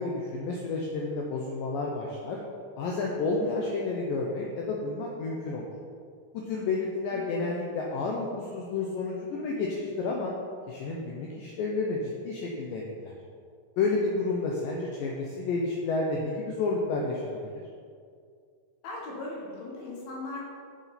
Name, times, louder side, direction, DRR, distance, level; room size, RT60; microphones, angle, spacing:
voice 1, 0.0-2.4 2.8-5.7 6.3-10.3 10.7-13.1 13.8-17.6, left 3 dB, 90° left, -1 dB, 1.9 m, -30 dB
voice 2, 18.8-20.5, left 2 dB, 65° left, -3 dB, 3.0 m, -38 dB
9.0 x 7.2 x 4.3 m, 2.2 s
omnidirectional pair, 5.0 m